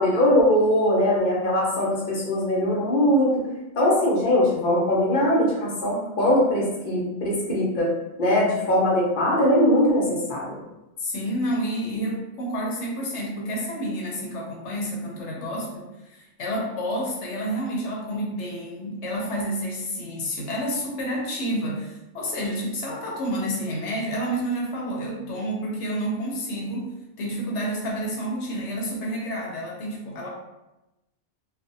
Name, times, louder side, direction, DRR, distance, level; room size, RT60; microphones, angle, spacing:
voice 1, 0.0-3.3 3.7-7.9 8.2-10.6, left 1 dB, 50° left, -4 dB, 0.8 m, -21 dB
voice 2, 11.0-30.3, equal, 80° left, -2 dB, 0.9 m, -29 dB
2.5 x 2.1 x 2.6 m, 0.97 s
omnidirectional pair, 1.2 m